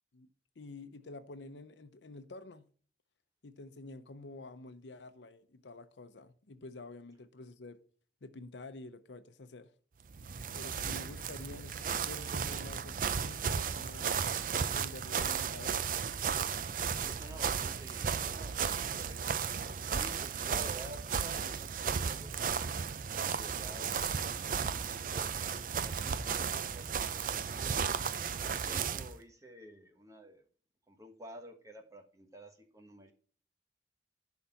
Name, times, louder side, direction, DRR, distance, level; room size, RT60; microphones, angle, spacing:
voice 1, 0.6-2.7 3.4-7.8 8.2-9.7 10.5-14.1 14.6-15.9, left 2 dB, 90° left, 0.7 m, -49 dB
sound 1, 10.1-29.1, right 6 dB, 50° right, 0.5 m, -34 dB
voice 2, 16.9-19.4 19.8-22.7 23.3-25.3 25.8-27.9 28.4-30.4 30.9-33.1, right 1 dB, 20° right, 1.2 m, -51 dB
11.0 x 4.0 x 5.8 m
head